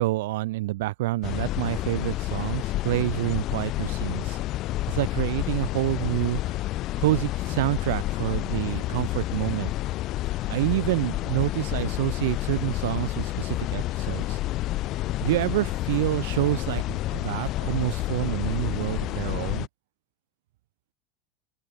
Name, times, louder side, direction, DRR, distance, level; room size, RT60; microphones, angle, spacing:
voice 1, 0.0-4.4 4.9-6.4 7.0-9.7 10.5-14.4 15.2-19.7, right 18 dB, 80° right, 2.1 m, -27 dB
sound 1, 1.2-19.7, left 16 dB, 40° left, 0.7 m, -29 dB
open air
supercardioid pair, 155°, 0 cm